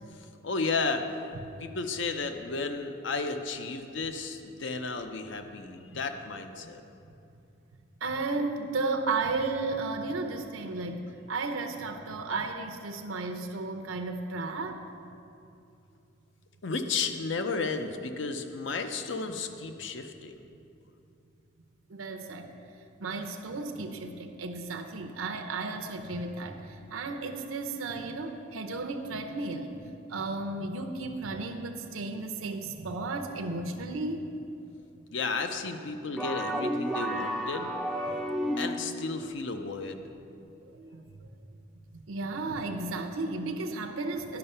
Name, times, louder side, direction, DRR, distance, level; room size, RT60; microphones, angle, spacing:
voice 1, 0.4-1.1 1.6-6.8 16.6-20.4 35.1-37.7 38.6-40.0, left 4 dB, 60° left, 7 dB, 0.6 m, -33 dB
voice 2, 8.0-14.8 21.9-22.5 23.0-26.7 26.9-29.8 30.1-34.2 40.7-41.3 42.1-44.4, right 3 dB, 85° right, 5 dB, 0.7 m, -34 dB
sound 1, 36.2-39.1, equal, ahead, 0.4 m, -31 dB
10.5 x 5.6 x 5.4 m, 2.7 s
head